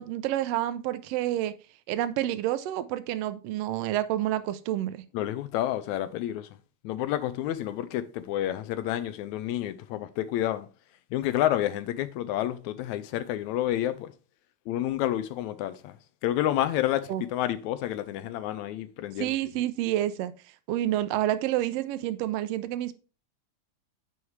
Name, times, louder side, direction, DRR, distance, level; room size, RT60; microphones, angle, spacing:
voice 1, 0.0-1.5 1.9-5.0 17.1-17.2 19.2-20.3 20.7-22.9, right 13 dB, 85° right, 1.4 m, -29 dB
voice 2, 5.1-6.5 6.8-10.7 11.1-14.1 14.7-16.0 16.2-19.3, left 13 dB, 80° left, 1.9 m, -29 dB
7.7 x 5.6 x 3.2 m
omnidirectional pair, 3.4 m